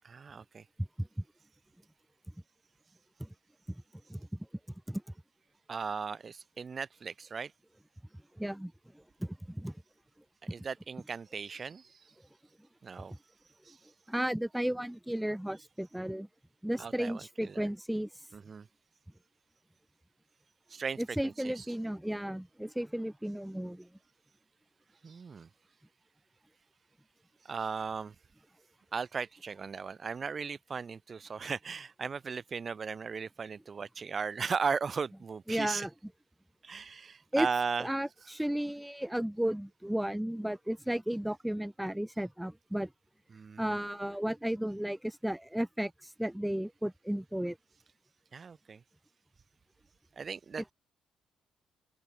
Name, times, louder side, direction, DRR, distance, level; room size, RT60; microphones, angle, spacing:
voice 1, 0.0-0.6 5.7-7.5 10.5-12.0 12.8-13.1 13.6-13.8 16.8-17.7 18.3-18.7 20.7-21.7 25.0-25.5 27.4-28.2 28.9-35.9 36.6-37.9 38.2-38.4 43.3-43.8 48.3-48.8 50.2-50.7, right 5 dB, 40° right, 3.8 m, -37 dB
voice 2, 8.4-8.7 9.2-9.7 14.1-16.3 16.6-18.1 21.0-23.9 35.5-35.9 37.3-37.5 37.8-42.9 43.6-47.6, right 1 dB, 5° right, 1.3 m, -34 dB
open air
cardioid pair, 90°, 0 cm